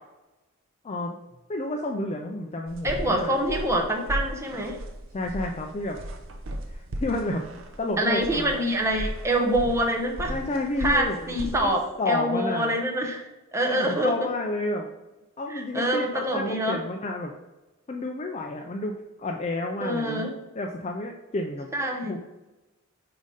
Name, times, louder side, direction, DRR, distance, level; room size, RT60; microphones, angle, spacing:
voice 1, 0.8-1.2 1.5-3.4 5.1-6.0 6.7-7.4 7.8-8.6 10.3-11.4 11.6-11.7 12.0-12.7 13.6-14.9 15.4-17.3 17.9-20.3 20.5-21.7 22.1-22.2, left 2 dB, 30° left, 2 dB, 0.4 m, -30 dB
sound 1, 2.7-11.7, right 1 dB, 60° right, 0.7 m, -36 dB
voice 2, 2.8-4.8 8.0-10.3 10.8-14.1 15.5-16.8 19.8-20.3 21.7-22.2, right 1 dB, 15° right, 0 dB, 0.9 m, -26 dB
5.2 x 3.9 x 4.9 m, 1.1 s
head